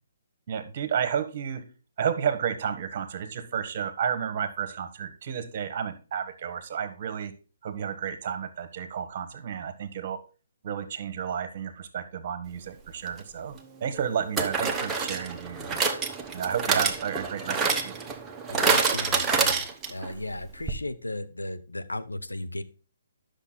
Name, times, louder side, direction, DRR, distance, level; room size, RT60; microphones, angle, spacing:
voice 1, 0.5-1.6 2.0-7.3 7.6-10.2 10.6-15.8 16.3-18.1, right 8 dB, 45° right, 11 dB, 1.3 m, -32 dB
sound 1, 13.1-13.2 14.4-20.1 20.4-20.5 20.7-20.8, right 4 dB, 15° right, 1.1 m, -27 dB
voice 2, 18.5-19.6 19.9-22.6, left 1 dB, 85° left, 10 dB, 0.8 m, -35 dB
10.0 x 6.5 x 4.0 m, 0.34 s
figure-of-eight pair, 135°, 0 cm